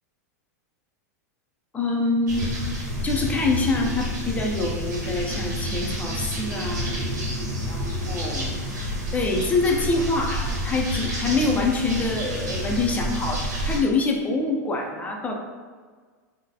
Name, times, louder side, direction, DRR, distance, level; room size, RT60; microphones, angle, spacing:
voice 1, 1.7-2.5 3.0-6.9 7.6-8.5 9.1-15.3, left 3 dB, 15° left, 0 dB, 0.5 m, -25 dB
sound 1, 2.3-13.8, equal, 80° right, 1.0 m, -29 dB
3.8 x 2.1 x 2.7 m, 1.5 s
hypercardioid pair, 110°, 9 cm